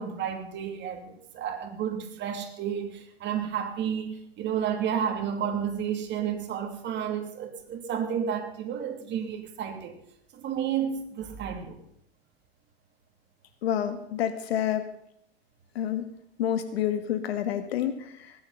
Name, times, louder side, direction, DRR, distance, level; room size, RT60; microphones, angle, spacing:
voice 1, 0.0-10.0 10.3-11.8, right 8 dB, 35° right, 2.6 m, -31 dB
voice 2, 13.6-14.8 15.7-16.0 16.4-18.3, left 10 dB, 70° left, 1.5 m, -28 dB
19.5 x 8.7 x 5.6 m
hypercardioid pair, 105°, 32 cm